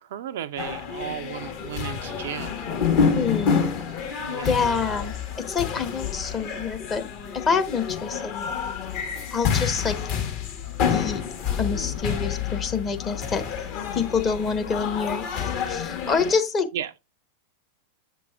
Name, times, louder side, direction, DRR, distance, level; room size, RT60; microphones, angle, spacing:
voice 1, 0.0-2.7 4.2-4.9 16.7-16.9, right 10 dB, 60° right, 0.3 m, -35 dB
sound 1, 0.6-16.4, left 6 dB, 50° left, 1.7 m, -28 dB
voice 2, 3.1-3.7 4.4-5.2 5.5-7.0 7.5-8.3 9.3-10.0 10.9-11.2 11.6-13.4 13.9-15.3 15.7-16.7, left 5 dB, 25° left, 1.0 m, -26 dB
7.9 x 6.0 x 2.4 m
figure-of-eight pair, 90°, 0 cm